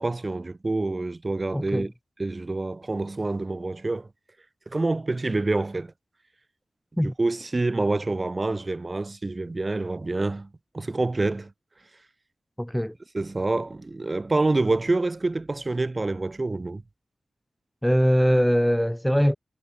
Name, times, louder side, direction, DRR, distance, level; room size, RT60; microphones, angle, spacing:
voice 1, 0.0-1.9 2.2-4.1 4.7-5.9 7.0-10.5 10.7-11.5 13.1-16.8, right 2 dB, 35° right, 5.6 m, -27 dB
voice 2, 1.5-1.9 7.0-7.1 12.6-12.9 17.8-19.4, equal, 5° left, 3.2 m, -22 dB
cardioid pair, 50°, 0 cm